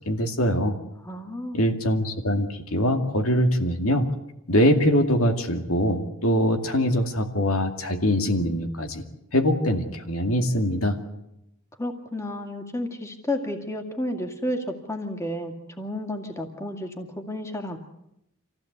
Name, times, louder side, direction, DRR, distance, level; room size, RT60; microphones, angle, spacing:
voice 1, 0.1-0.7 1.5-4.1 4.5-9.0 9.3-11.0, equal, 80° left, 5 dB, 2.4 m, -23 dB
voice 2, 1.0-1.6 11.8-17.8, left 1 dB, 15° left, 4 dB, 2.2 m, -31 dB
26.0 x 16.0 x 8.2 m, 0.83 s
head